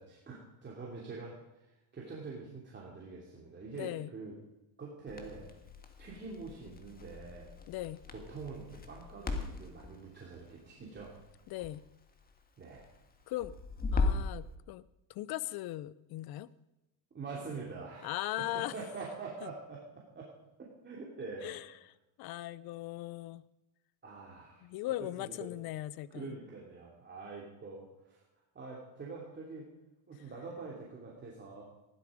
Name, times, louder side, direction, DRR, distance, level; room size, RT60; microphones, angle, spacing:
voice 1, 0.0-1.3 1.6-4.3 4.8-5.5 6.0-7.5 8.1-11.1 12.6-12.9 17.1-20.3 20.6-21.6 24.0-24.7 25.2-25.5 26.1-28.2 28.5-29.7 30.1-31.6, right 4 dB, 25° right, -3 dB, 2.9 m, -45 dB
voice 2, 3.7-4.1 7.7-8.0 11.5-11.8 13.3-13.5 13.9-14.8 15.1-16.5 18.0-18.7 19.4-19.5 21.4-21.9 22.2-23.4 24.6-26.4, left 15 dB, 55° left, 18 dB, 0.7 m, -39 dB
Crackle, 5.1-14.4, left 3 dB, 20° left, 1.7 m, -38 dB
15.0 x 12.0 x 5.1 m, 0.97 s
cardioid pair, 125°, 44 cm